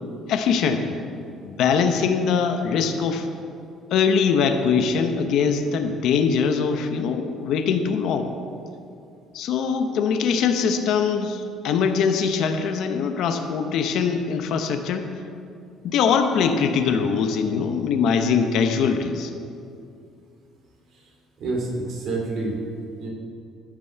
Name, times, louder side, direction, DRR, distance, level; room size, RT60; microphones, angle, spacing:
voice 1, 0.3-1.0 1.4-3.3 3.9-8.3 9.3-15.1 15.8-19.3, left 6 dB, 55° left, 7 dB, 0.8 m, -22 dB
voice 2, 20.9-22.6 23.0-23.1, right 2 dB, 50° right, -1 dB, 2.4 m, -29 dB
14.0 x 6.1 x 6.7 m, 2.5 s
cardioid pair, 175°, 0 cm